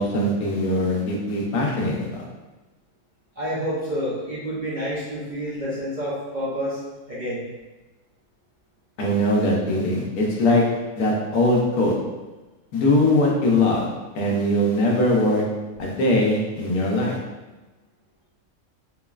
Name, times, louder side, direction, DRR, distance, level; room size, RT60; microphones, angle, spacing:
voice 1, 0.0-2.1 9.0-10.6 11.0-11.9 12.7-13.9 14.1-15.4 15.8-17.2, left 1 dB, 75° left, -2 dB, 1.2 m, -21 dB
voice 2, 3.4-6.8 7.1-7.5, equal, 45° right, -9 dB, 0.6 m, -28 dB
3.7 x 3.0 x 2.3 m, 1.1 s
omnidirectional pair, 1.5 m